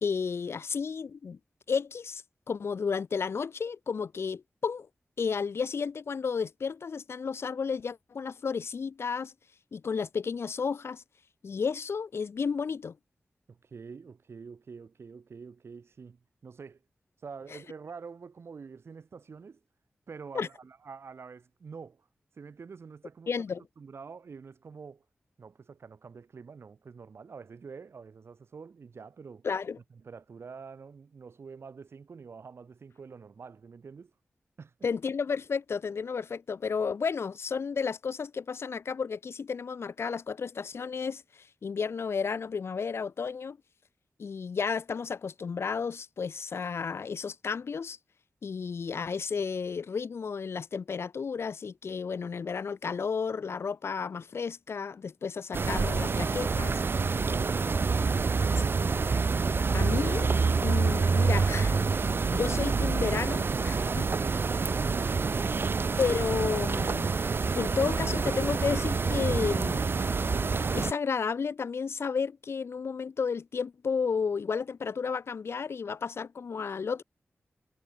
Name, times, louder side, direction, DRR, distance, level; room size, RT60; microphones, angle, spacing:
voice 1, 0.0-1.4 1.7-4.9 5.2-9.3 9.7-11.0 11.4-13.0 17.5-17.6 20.3-20.5 23.3-23.6 29.4-29.8 34.8-43.6 44.2-48.0 48.4-56.8 59.7-60.3 60.6-64.3 66.0-67.2 67.5-69.9 70.2-77.0, left 5 dB, 75° left, 1.2 m, -32 dB
voice 2, 13.5-16.8 17.2-19.6 20.1-22.1 22.4-23.3 23.8-25.0 25.4-29.5 29.9-34.1 34.6-34.7 58.0-58.9 64.3-65.7, right 5 dB, 75° right, 5.3 m, -46 dB
sound 1, 55.5-70.9, right 4 dB, 60° right, 1.0 m, -27 dB
cardioid pair, 65°, 4 cm